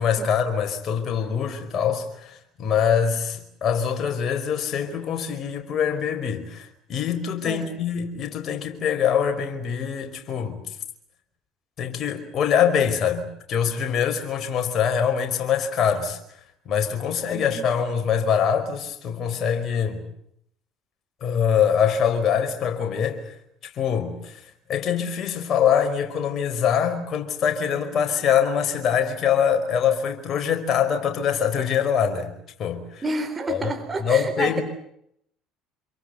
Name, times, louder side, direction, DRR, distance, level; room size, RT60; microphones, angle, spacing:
voice 1, 0.0-10.6 11.8-16.2 16.6-20.0 21.2-23.3 23.6-24.4 24.7-32.3 32.6-33.0 33.5-33.7 34.0-34.6, left 8 dB, 50° left, 4.9 m, -24 dB
voice 2, 17.3-17.7 33.0-34.6, right 3 dB, 25° right, 3.8 m, -29 dB
27.5 x 23.0 x 8.1 m
hypercardioid pair, 60°, 0 cm